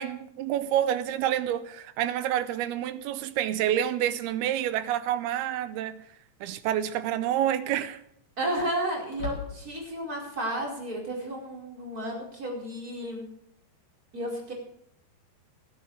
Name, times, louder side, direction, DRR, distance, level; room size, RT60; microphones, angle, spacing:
voice 1, 0.0-6.1 6.4-8.0, right 11 dB, 80° right, 2.5 m, -28 dB
sound 1, 6.4-6.8 7.2-7.3 9.1-10.0, left 4 dB, 35° left, 3.2 m, -39 dB
voice 2, 8.4-13.3 14.1-14.5, right 1 dB, 20° right, 4.8 m, -32 dB
20.0 x 12.5 x 3.3 m
omnidirectional pair, 4.9 m